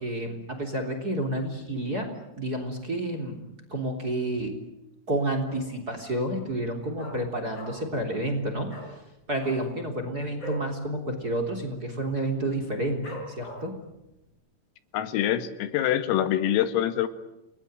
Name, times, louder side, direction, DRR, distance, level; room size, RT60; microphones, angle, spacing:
voice 1, 0.0-3.4 3.7-4.6 5.1-9.0 9.3-13.7, right 1 dB, 20° right, 7 dB, 3.0 m, -30 dB
Dog, 5.5-5.9 6.2-6.3 6.6-8.0 8.3-8.4 8.7-8.9 9.3-10.7 11.1-11.2 11.5-11.9 12.4-12.5 13.0-13.8 14.3-14.4, equal, 20° left, 6.7 m, -41 dB
voice 2, 14.9-17.1, left 11 dB, 90° left, 11 dB, 4.3 m, -25 dB
29.5 x 21.0 x 9.1 m, 0.93 s
omnidirectional pair, 5.9 m